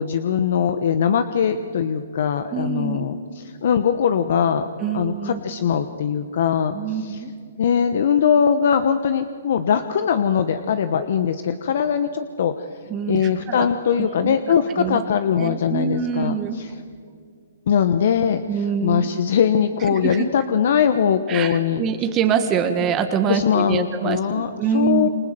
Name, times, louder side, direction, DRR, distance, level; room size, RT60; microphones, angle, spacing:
voice 1, 0.0-4.7 4.9-7.2 7.6-12.7 13.1-16.7 17.7-21.8 23.3-25.1, left 7 dB, 60° left, 10 dB, 1.2 m, -21 dB
voice 2, 2.5-3.0 4.8-5.4 6.7-7.3 12.9-13.7 14.0-14.4 14.8-15.0 15.4-16.6 18.5-19.1 19.9-20.3 21.3-25.1, right 7 dB, 25° right, 7 dB, 1.7 m, -25 dB
27.5 x 25.5 x 7.8 m, 2.2 s
hypercardioid pair, 140°, 0 cm